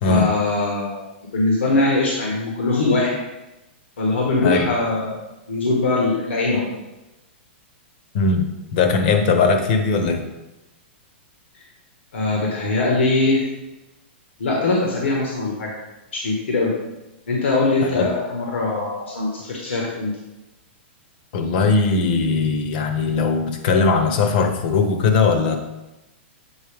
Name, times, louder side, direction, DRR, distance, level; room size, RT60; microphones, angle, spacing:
voice 1, 0.0-1.0 1.3-3.1 4.0-5.2 5.5-6.6 12.1-13.5 14.4-15.7 16.1-16.7 17.3-20.1, left 2 dB, 90° left, -2 dB, 1.6 m, -21 dB
voice 2, 8.1-10.2 17.8-18.1 21.3-25.6, left 4 dB, 50° left, 6 dB, 0.9 m, -19 dB
8.0 x 4.2 x 3.5 m, 0.99 s
hypercardioid pair, 150°, 6 cm